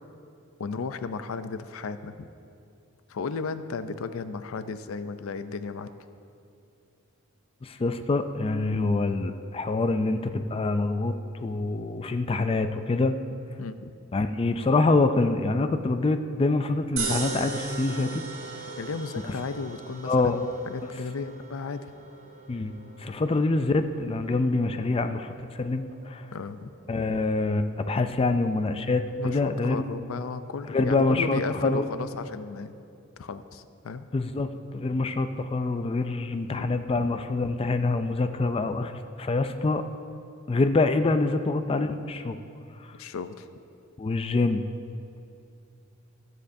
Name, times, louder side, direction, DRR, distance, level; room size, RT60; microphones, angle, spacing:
voice 1, 0.6-2.3 3.1-5.9 13.6-13.9 18.8-21.8 26.3-26.7 29.2-32.7 33.2-34.1 36.6-36.7 37.0-37.1 43.0-43.5, left 4 dB, 85° left, 11 dB, 0.5 m, -34 dB
voice 2, 7.6-13.2 14.1-18.2 20.0-20.4 22.5-22.7 23.0-26.3 26.9-29.8 30.7-31.9 34.1-39.8 40.5-42.4 42.8-42.9 44.0-44.6, left 3 dB, 25° left, 9 dB, 0.4 m, -25 dB
sound 1, 17.0-29.3, right 4 dB, 75° right, 1.8 m, -40 dB
19.5 x 7.6 x 2.7 m, 2.6 s
head